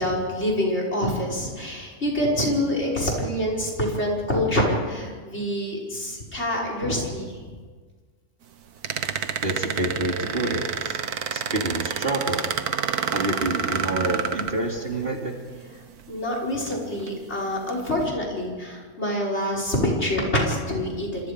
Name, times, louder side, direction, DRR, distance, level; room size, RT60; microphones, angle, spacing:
voice 1, 0.0-7.4 16.1-21.3, left 1 dB, 45° left, -1 dB, 5.8 m, -26 dB
sound 1, 8.8-15.0 16.0-16.1 16.6-17.1 17.7-17.9, right 7 dB, 90° right, 1.6 m, -28 dB
voice 2, 9.4-11.0 11.3-12.5 13.1-15.3, right 2 dB, 40° right, 1 dB, 3.0 m, -27 dB
28.5 x 26.0 x 5.2 m, 1.5 s
omnidirectional pair, 1.5 m